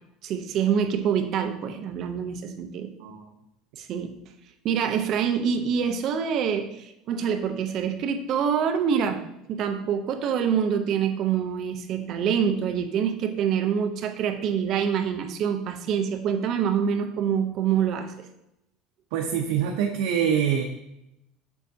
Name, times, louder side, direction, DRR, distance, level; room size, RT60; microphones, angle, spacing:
voice 1, 0.2-2.9 3.8-4.2 4.6-9.2 9.5-18.3, right 7 dB, 40° right, 7 dB, 0.6 m, -26 dB
voice 2, 19.1-20.6, right 8 dB, 80° right, 2 dB, 0.7 m, -25 dB
7.0 x 6.1 x 2.7 m, 0.85 s
cardioid pair, 165°, 0 cm